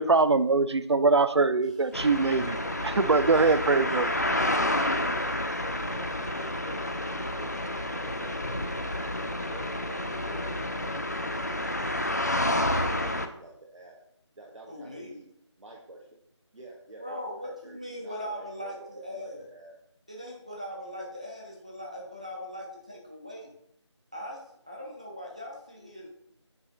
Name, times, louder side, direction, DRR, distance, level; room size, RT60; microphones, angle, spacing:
voice 1, 0.0-2.6 2.8-4.1, right 3 dB, 60° right, 0.5 m, -23 dB
sound 1, 1.9-13.3, left 1 dB, 35° left, 0.4 m, -30 dB
voice 2, 2.4-2.8 4.5-6.8 7.1-8.9 9.3-10.6 11.4-12.4 12.8-14.0 14.4-15.3 15.6-16.2 16.5-19.8, right 2 dB, 85° right, 1.4 m, -48 dB
voice 3, 3.3-4.3 14.7-15.2 17.0-19.5 20.1-23.5 24.1-26.1, equal, 15° right, 0.6 m, -40 dB
8.2 x 2.9 x 5.1 m
figure-of-eight pair, 175°, 16 cm